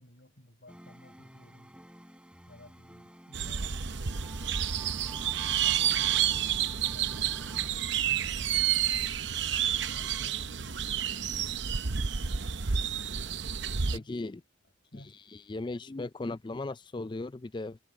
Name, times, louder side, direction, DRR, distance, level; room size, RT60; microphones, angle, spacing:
voice 1, 0.0-1.7 2.5-3.8 4.7-8.8 9.9-10.8 13.8-14.3 14.9-15.2, left 1 dB, 55° left, 7.9 m, -55 dB
sound 1, 0.7-7.7, right 1 dB, 5° right, 6.7 m, -51 dB
sound 2, 3.3-14.0, right 8 dB, 60° right, 0.8 m, -30 dB
voice 2, 13.9-14.4 14.9-15.0 15.3-17.8, left 2 dB, 25° left, 0.4 m, -37 dB
head